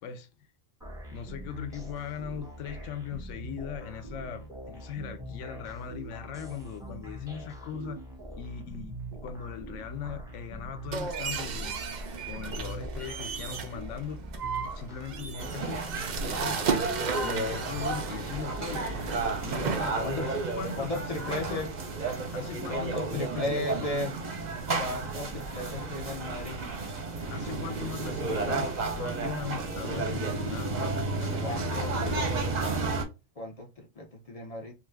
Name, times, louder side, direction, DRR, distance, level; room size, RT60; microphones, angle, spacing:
sound 1, 0.8-15.6, right 1 dB, 5° right, 0.7 m, -43 dB
voice 1, 1.1-8.0 8.4-11.8 12.3-14.3 14.6-15.8 16.2-16.6 17.2-18.9 19.4-21.6 22.3-24.0 27.3-32.4, left 7 dB, 75° left, 0.9 m, -39 dB
sound 2, 10.9-19.9, right 5 dB, 85° right, 0.4 m, -35 dB
sound 3, 15.4-33.0, right 3 dB, 45° right, 0.6 m, -32 dB
voice 2, 20.8-21.7 22.7-24.1 24.8-26.7 31.4-31.9 33.4-33.7 34.0-34.7, left 1 dB, 55° left, 0.4 m, -35 dB
2.5 x 2.4 x 3.2 m
omnidirectional pair, 1.3 m